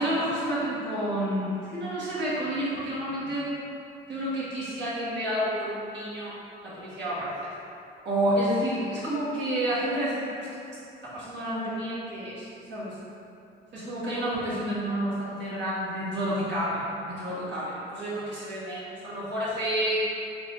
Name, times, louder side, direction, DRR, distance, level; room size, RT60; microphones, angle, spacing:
voice 1, 0.0-3.5 4.1-6.3 6.6-7.3 8.0-10.5 11.0-12.9 13.7-20.0, right 1 dB, 65° right, -9 dB, 1.4 m, -29 dB
4.6 x 3.1 x 2.5 m, 2.7 s
cardioid pair, 90°, 20 cm